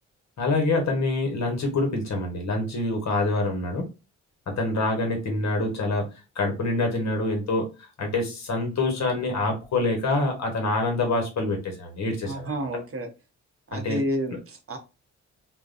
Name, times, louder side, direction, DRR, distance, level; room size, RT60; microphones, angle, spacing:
voice 1, 0.4-3.8 4.5-6.0 6.4-7.7 8.0-12.5 13.7-14.0, left 2 dB, 55° left, 1.1 m, -26 dB
voice 2, 12.3-13.1 13.7-14.8, equal, 45° right, 0.8 m, -30 dB
2.4 x 2.1 x 2.5 m
cardioid pair, 65°, 32 cm